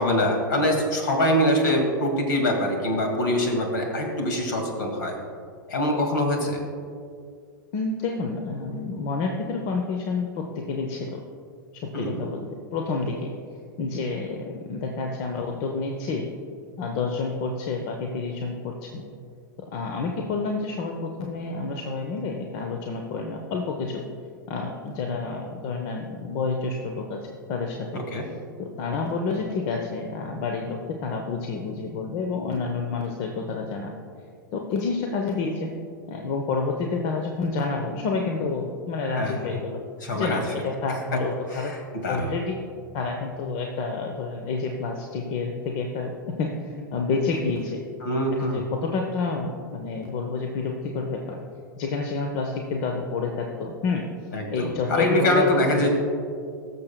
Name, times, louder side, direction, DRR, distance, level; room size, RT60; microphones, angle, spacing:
voice 1, 0.0-5.1 5.7-6.6 11.9-12.2 27.9-28.2 39.2-39.6 40.0-40.4 41.5-42.3 48.0-48.6 54.3-55.9, left 1 dB, 65° left, 2 dB, 2.1 m, -24 dB
voice 2, 7.7-11.2 11.8-13.3 13.8-14.4 14.7-16.2 16.8-19.0 19.7-24.0 24.5-27.2 27.5-28.0 28.6-33.9 34.5-35.7 36.1-39.8 40.1-41.7 42.1-42.6 42.9-47.8 48.4-51.4 51.8-54.1 54.5-55.9, left 4 dB, 50° left, 2 dB, 0.9 m, -29 dB
19.5 x 6.8 x 2.3 m, 2.2 s
hypercardioid pair, 100°, 11 cm